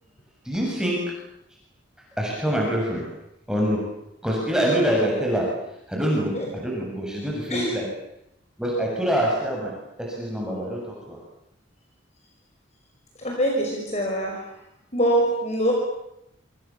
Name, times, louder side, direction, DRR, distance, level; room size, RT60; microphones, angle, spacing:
voice 1, 0.4-1.0 2.2-3.1 3.5-3.8 4.2-5.5 5.9-7.9 8.6-11.2, equal, 5° right, -3 dB, 7.0 m, -25 dB
voice 2, 13.2-14.4 14.9-15.7, right 1 dB, 35° left, 1 dB, 5.6 m, -23 dB
28.5 x 26.5 x 7.2 m, 0.80 s
head